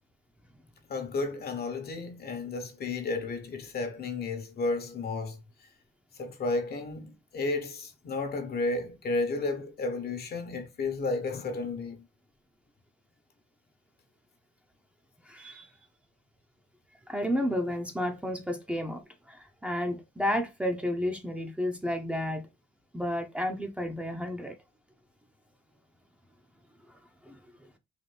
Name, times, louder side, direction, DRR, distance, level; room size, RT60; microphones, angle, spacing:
voice 1, 0.9-5.7 6.1-12.1, left 3 dB, 55° left, 1.0 m, -32 dB
voice 2, 15.2-15.7 17.1-19.0 19.3-22.5 22.9-24.6 26.9-27.4, left 1 dB, 5° right, 0.7 m, -32 dB
4.1 x 2.6 x 3.3 m
cardioid pair, 90°, 20 cm